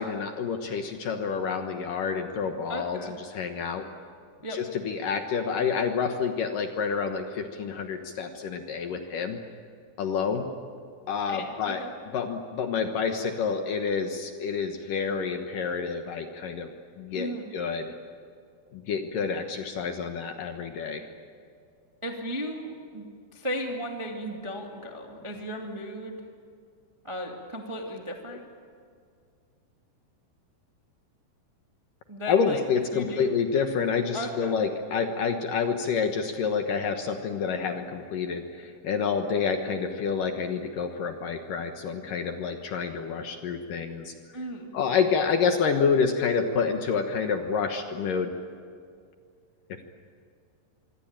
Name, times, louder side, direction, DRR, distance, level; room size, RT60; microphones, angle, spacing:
voice 1, 0.0-3.8 4.5-9.4 10.0-10.5 11.1-11.8 12.1-16.7 17.0-17.9 18.7-21.1 28.3-28.4 32.3-44.1 44.7-48.3 49.7-49.8, left 6 dB, 65° left, 5 dB, 2.4 m, -28 dB
voice 2, 2.7-3.1 4.4-4.6 11.3-11.9 17.1-17.5 22.0-23.1 23.3-26.2 27.0-28.4 32.1-32.6 32.9-33.3 34.1-34.5 44.3-44.7, equal, 15° right, 1 dB, 1.1 m, -35 dB
25.5 x 24.5 x 8.9 m, 2.2 s
omnidirectional pair, 5.1 m